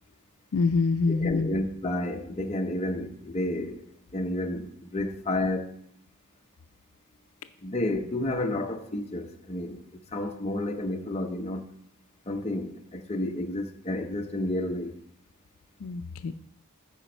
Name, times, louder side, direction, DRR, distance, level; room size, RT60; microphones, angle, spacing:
voice 1, 0.5-1.5 15.8-16.3, left 4 dB, 70° left, 0.4 m, -25 dB
voice 2, 1.1-3.8 4.1-5.7 7.6-9.8 10.1-11.6 12.3-15.0, left 1 dB, 30° left, 0.6 m, -31 dB
13.0 x 5.1 x 4.4 m
head